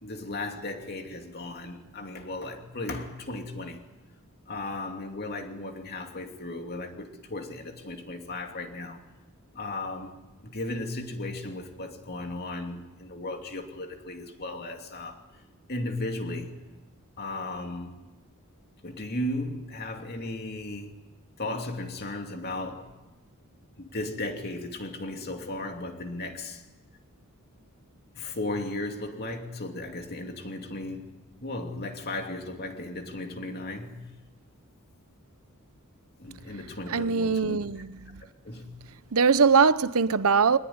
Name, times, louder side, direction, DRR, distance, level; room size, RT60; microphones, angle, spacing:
voice 1, 0.0-3.8 4.5-9.0 9.5-10.1 10.4-15.2 15.7-16.6 17.2-18.0 18.8-21.0 21.4-23.0 23.8-26.6 28.2-31.1 31.4-34.1 36.2-37.6 38.4-38.7, left 2 dB, 45° left, 2.8 m, -35 dB
voice 2, 36.9-38.2 39.1-40.6, right 5 dB, 70° right, 0.8 m, -22 dB
23.0 x 20.0 x 9.6 m
head